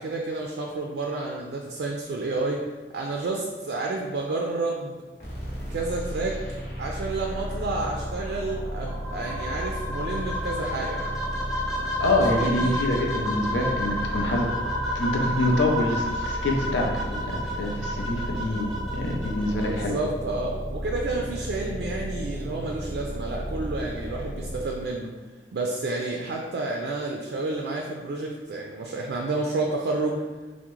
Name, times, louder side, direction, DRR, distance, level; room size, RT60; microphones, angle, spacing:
voice 1, 0.0-2.6 2.9-5.0 5.7-6.4 6.8-11.0 12.3-12.8 19.6-25.1 25.5-30.2, right 3 dB, 65° right, 0 dB, 0.3 m, -30 dB
sound 1, 5.2-24.8, equal, 55° left, 0.8 m, -34 dB
sound 2, 8.9-19.8, equal, ahead, 0.5 m, -31 dB
voice 2, 12.0-14.5 14.9-20.0, left 1 dB, 85° left, 0 dB, 0.5 m, -26 dB
3.5 x 2.1 x 3.0 m, 1.3 s
head